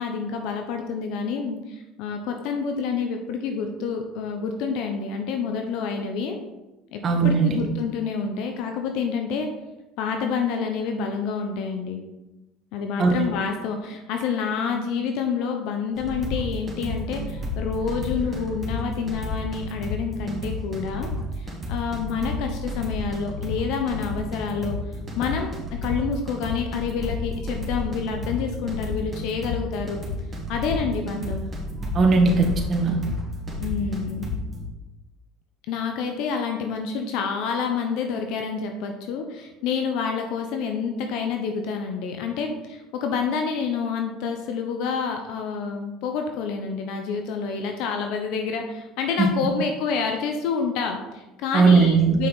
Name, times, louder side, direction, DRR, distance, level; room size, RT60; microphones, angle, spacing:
voice 1, 0.0-6.4 6.9-9.5 10.0-12.0 12.7-30.0 30.5-31.4 33.6-34.3 35.7-52.3, left 5 dB, 70° left, 4 dB, 0.8 m, -28 dB
voice 2, 7.0-7.6 13.0-13.1 31.9-33.0 49.2-49.3 51.5-52.2, right 4 dB, 35° right, 1 dB, 1.6 m, -18 dB
sound 1, 16.0-34.6, left 2 dB, 20° right, 2.2 m, -31 dB
7.3 x 5.7 x 4.0 m, 1.0 s
supercardioid pair, 105°, 0 cm